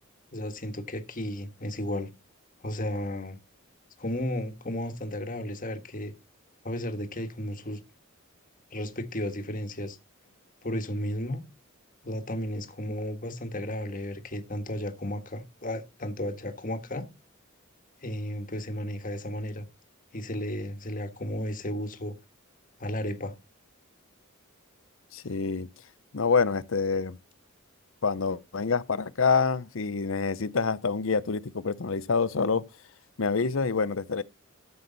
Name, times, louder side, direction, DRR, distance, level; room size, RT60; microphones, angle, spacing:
voice 1, 0.3-2.1 2.6-3.4 4.0-6.1 6.6-7.8 8.7-10.0 10.6-11.4 12.0-17.0 18.0-19.7 20.1-22.1 22.8-23.3, left 1 dB, 40° left, 1.6 m, -33 dB
voice 2, 25.1-25.7 26.1-27.2 28.0-32.6 33.2-34.2, left 5 dB, 65° left, 0.7 m, -26 dB
13.5 x 7.2 x 4.0 m
head